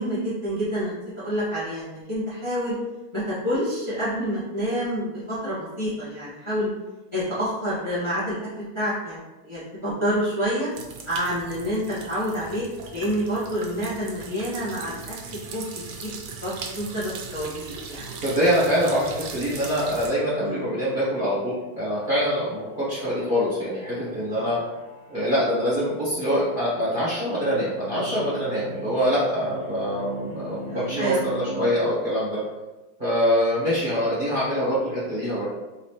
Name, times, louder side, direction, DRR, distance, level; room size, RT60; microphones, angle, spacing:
voice 1, 0.0-2.7 3.1-6.7 7.1-8.3 8.7-10.7 11.0-12.7 12.9-14.9 15.3-15.6 16.0-16.1 16.4-18.1 20.4-20.7 24.3-24.6 30.6-31.3, equal, 15° left, -11 dB, 1.3 m, -28 dB
sound 1, 10.7-20.1, right 5 dB, 70° right, 1.2 m, -39 dB
voice 2, 18.2-24.6 25.1-32.4 33.0-35.5, equal, 30° right, -10 dB, 1.4 m, -24 dB
sound 2, 21.2-31.7, right 1 dB, 70° left, 1.5 m, -40 dB
4.1 x 3.9 x 3.1 m, 1.1 s
omnidirectional pair, 2.2 m